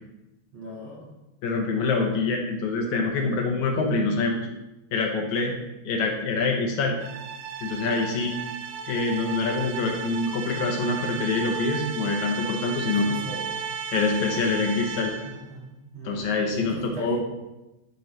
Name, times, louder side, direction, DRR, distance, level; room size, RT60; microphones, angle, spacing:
voice 1, 0.5-1.1 12.8-13.4 15.2-17.2, right 2 dB, 45° right, -6 dB, 2.3 m, -38 dB
voice 2, 1.4-4.5 4.9-5.5 5.9-7.0 7.6-8.4 8.9-13.1 13.9-15.1 16.0-17.2, left 3 dB, 75° left, 2 dB, 2.1 m, -25 dB
sound 1, 7.0-15.4, right 7 dB, 85° right, 1.5 m, -34 dB
12.0 x 5.3 x 3.2 m, 0.99 s
omnidirectional pair, 3.7 m